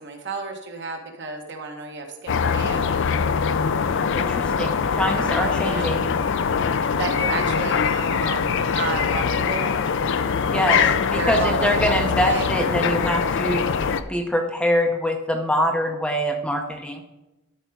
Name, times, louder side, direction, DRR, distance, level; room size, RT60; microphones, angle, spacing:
voice 1, 0.0-2.9 5.6-5.9 6.9-9.7 10.8-11.9 12.2-12.5, right 4 dB, 55° right, 2 dB, 1.3 m, -31 dB
sound 1, 2.3-14.0, left 6 dB, 60° left, 0.4 m, -23 dB
voice 2, 4.1-6.0 10.5-10.8 11.1-17.0, equal, 5° left, 3 dB, 0.6 m, -24 dB
12.0 x 4.9 x 4.6 m, 1.0 s
head